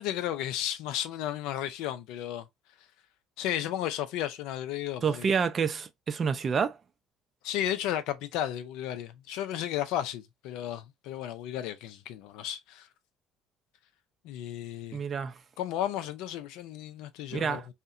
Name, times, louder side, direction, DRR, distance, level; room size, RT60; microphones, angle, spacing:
voice 1, 0.0-2.5 3.4-5.3 7.4-12.9 14.2-15.0 15.6-17.6, left 11 dB, 75° left, 0.3 m, -33 dB
voice 2, 5.0-6.8 14.9-15.4 17.3-17.7, right 6 dB, 45° right, 0.4 m, -28 dB
2.6 x 2.1 x 2.3 m
hypercardioid pair, 60°, 0 cm